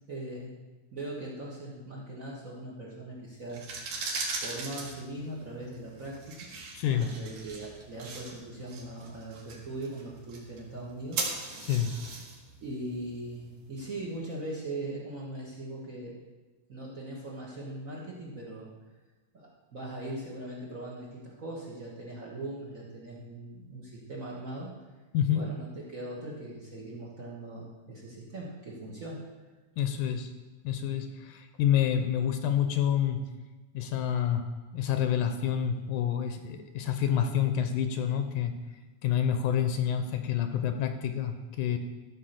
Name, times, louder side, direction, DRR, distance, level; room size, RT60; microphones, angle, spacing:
voice 1, 0.1-0.5 0.9-3.6 4.4-6.5 6.8-11.5 12.6-16.1 16.7-18.7 19.3-24.7 25.3-29.2, right 1 dB, 65° right, -3 dB, 0.7 m, -40 dB
sound 1, 3.4-14.3, right 3 dB, 85° right, 3.3 m, -40 dB
voice 2, 6.7-7.1 11.6-11.9 25.1-25.5 29.8-30.3 30.6-33.3 33.7-34.5 34.7-38.6 39.0-41.8, left 9 dB, 80° left, 7 dB, 2.1 m, -28 dB
13.0 x 5.1 x 6.5 m, 1.2 s
omnidirectional pair, 3.7 m